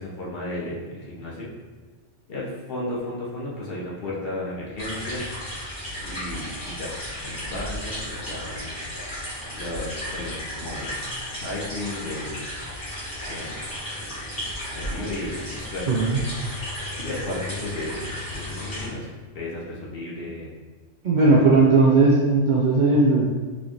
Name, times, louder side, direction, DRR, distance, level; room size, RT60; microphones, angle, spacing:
voice 1, 0.0-1.5 2.3-5.2 5.9-6.9 7.2-8.7 9.5-12.5 13.3-13.6 14.0-14.1 14.7-16.0 17.0-20.5 21.2-21.6, left 1 dB, 55° left, -5 dB, 0.9 m, -34 dB
sound 1, 4.8-18.9, left 1 dB, 85° left, 1.9 m, -34 dB
voice 2, 15.9-16.2 21.0-23.2, right 3 dB, 60° right, -5 dB, 0.5 m, -17 dB
4.2 x 2.9 x 2.5 m, 1.4 s
omnidirectional pair, 1.3 m